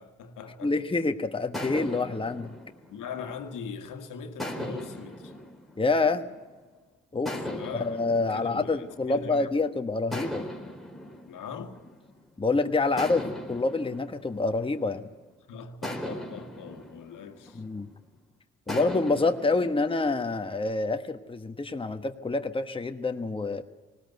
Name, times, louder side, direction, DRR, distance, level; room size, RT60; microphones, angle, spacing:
voice 1, 0.0-0.7 2.9-5.3 7.2-9.5 11.3-11.8 15.5-17.6, left 6 dB, 70° left, 1.8 m, -41 dB
voice 2, 0.6-2.5 5.8-6.3 7.1-7.3 7.8-10.4 12.4-15.1 17.5-17.9 18.7-23.6, left 3 dB, 15° left, 1.3 m, -27 dB
sound 1, 1.5-3.8 4.4-6.7 7.3-9.5 10.1-12.4 13.0-15.2 15.8-18.1 18.7-20.5, equal, ahead, 4.1 m, -39 dB
19.5 x 17.5 x 8.1 m
hypercardioid pair, 50°, 32 cm